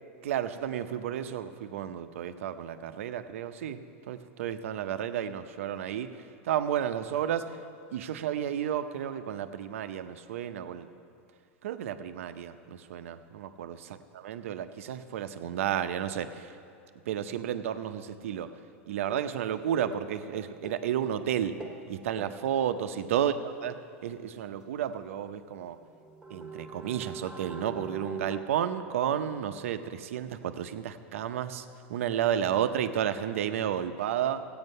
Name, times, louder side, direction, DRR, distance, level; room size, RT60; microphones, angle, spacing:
voice 1, 0.2-3.8 4.1-6.1 6.4-7.6 7.9-10.9 11.6-16.5 17.1-18.5 18.9-21.5 21.9-23.8 24.0-25.8 26.3-34.5, right 9 dB, 75° right, 9 dB, 0.7 m, -32 dB
sound 1, 19.1-19.5 19.8-21.9 22.2-22.5 25.5-25.6 25.9-28.4, right 4 dB, 5° right, 1.5 m, -43 dB
15.5 x 8.7 x 5.5 m, 2.4 s
hypercardioid pair, 120°, 7 cm